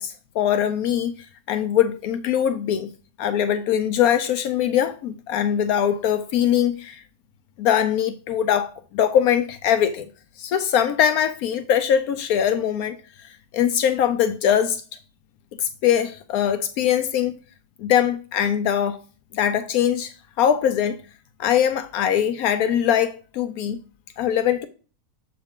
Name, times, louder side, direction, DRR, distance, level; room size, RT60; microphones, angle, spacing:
voice 1, 0.0-2.9 3.2-7.0 7.6-10.1 10.4-14.8 15.6-17.3 17.8-19.0 19.3-21.0 21.4-23.8 24.2-24.7, left 9 dB, 80° left, 1.1 m, -22 dB
7.4 x 4.8 x 3.5 m
omnidirectional pair, 1.6 m